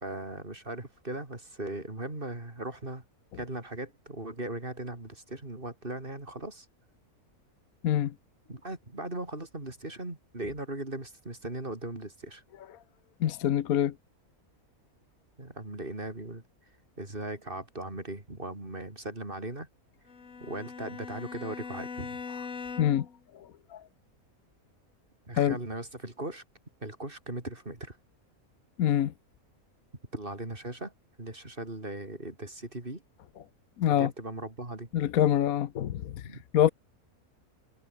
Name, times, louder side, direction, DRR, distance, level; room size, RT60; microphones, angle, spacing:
voice 1, 0.0-3.0 3.3-6.7 8.5-12.4 15.4-16.4 17.0-19.7 20.4-22.2 25.3-26.4 26.8-28.0 30.1-30.9 31.2-33.0 33.9-34.9 36.2-36.4, right 2 dB, 35° right, 4.2 m, -38 dB
voice 2, 13.2-13.9 22.8-23.1 23.4-23.5 23.7-23.8 25.4-25.6 28.8-29.1 33.8-34.1 34.9-36.3 36.5-36.7, left 10 dB, 80° left, 1.3 m, -25 dB
Bowed string instrument, 20.1-23.2, left 5 dB, 60° left, 2.3 m, -41 dB
omnidirectional pair, 1.5 m